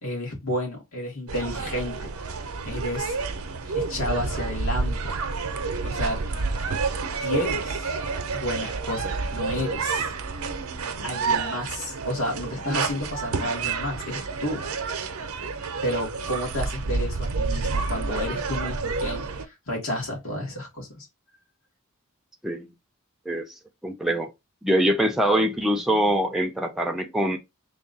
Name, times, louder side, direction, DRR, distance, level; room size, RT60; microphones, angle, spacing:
voice 1, 0.0-2.1 2.6-3.2 3.6-5.2 5.8-6.2 7.2-8.0 8.3-10.1 11.0-14.6 15.8-21.1, left 1 dB, 70° left, 1.7 m, -31 dB
sound 1, 1.3-19.4, right 4 dB, 90° right, 0.6 m, -29 dB
voice 2, 23.8-24.3 24.6-27.4, equal, ahead, 0.4 m, -23 dB
3.5 x 2.3 x 3.9 m
head